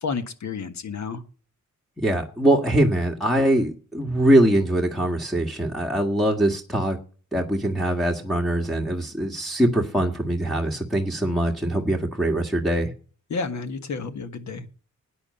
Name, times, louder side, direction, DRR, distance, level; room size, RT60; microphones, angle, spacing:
voice 1, 0.0-1.2 13.3-14.7, left 4 dB, 65° left, 9 dB, 1.7 m, -30 dB
voice 2, 2.0-7.0 7.3-12.9, right 1 dB, ahead, -1 dB, 1.8 m, -22 dB
13.0 x 9.7 x 5.4 m, 0.39 s
wide cardioid pair, 120°, 30 cm